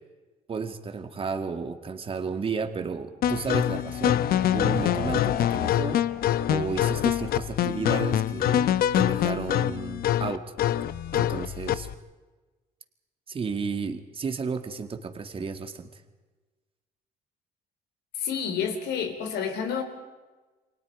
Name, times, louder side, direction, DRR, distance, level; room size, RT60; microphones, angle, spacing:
voice 1, 0.5-4.2 4.5-6.0 6.5-10.5 11.1-11.9 13.3-15.9, right 5 dB, 35° right, 2.1 m, -32 dB
sound 1, 3.2-11.9, left 11 dB, 60° left, 0.9 m, -25 dB
voice 2, 18.2-19.8, left 7 dB, 80° left, 3.8 m, -29 dB
28.5 x 24.5 x 4.9 m
cardioid pair, 110°, 17 cm